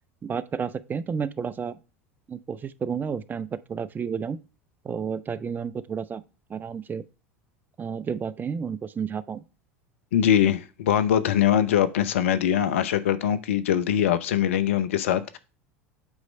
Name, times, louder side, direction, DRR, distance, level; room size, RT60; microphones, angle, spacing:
voice 1, 0.2-1.8 2.3-4.4 4.9-6.2 6.5-7.0 7.8-9.4, right 6 dB, 25° right, 0.6 m, -31 dB
voice 2, 10.1-15.4, left 10 dB, 80° left, 0.7 m, -22 dB
8.2 x 3.1 x 5.2 m
hypercardioid pair, 80°, 7 cm